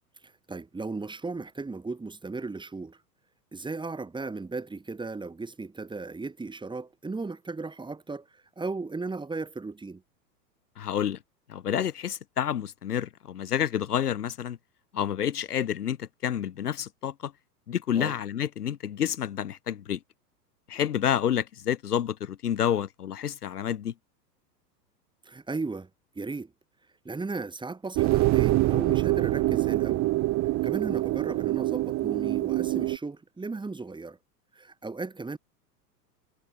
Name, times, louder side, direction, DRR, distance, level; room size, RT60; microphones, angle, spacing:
voice 1, 0.2-3.0 3.5-10.0 17.9-18.2 25.2-25.9 26.1-26.5 27.0-30.1 30.6-34.2 34.5-35.4, right 3 dB, 10° right, 6.5 m, -36 dB
voice 2, 10.8-11.2 11.5-14.6 14.9-17.3 17.7-20.0 20.7-23.9, left 9 dB, 65° left, 5.3 m, -29 dB
sound 1, 28.0-33.0, right 18 dB, 35° right, 3.9 m, -25 dB
figure-of-eight pair, 100°, 49 cm